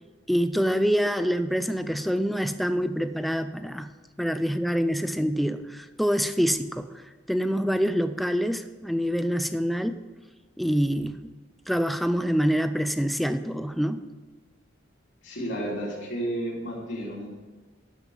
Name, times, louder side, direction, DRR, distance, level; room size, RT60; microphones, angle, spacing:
voice 1, 0.3-3.9 4.2-6.9 7.3-10.0 10.6-11.2 11.7-14.0, equal, ahead, 10 dB, 0.4 m, -26 dB
voice 2, 15.2-17.3, right 1 dB, 80° left, -5 dB, 2.6 m, -32 dB
12.0 x 5.3 x 5.3 m, 1.4 s
head